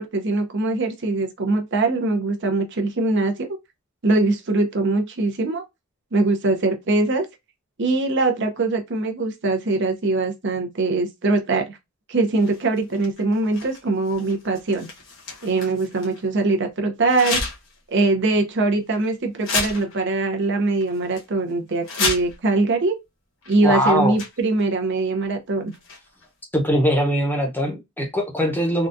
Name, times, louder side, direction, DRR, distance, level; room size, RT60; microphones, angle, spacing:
voice 1, 0.0-3.6 4.0-5.6 6.1-7.3 7.8-11.8 12.1-14.9 15.4-17.4 17.9-23.0 23.5-25.7, right 3 dB, 55° right, 0.7 m, -22 dB
sound 1, 12.3-16.2 17.1-17.8 18.2-18.3 18.9-19.1 19.4-20.2 20.4-20.5 20.8-21.2 21.7-22.5 23.4-23.6 23.8-24.6 25.7-26.3, left 4 dB, 60° left, 1.2 m, -31 dB
voice 2, 23.6-24.2 26.5-28.9, equal, 10° left, 0.7 m, -21 dB
3.8 x 2.3 x 2.5 m
head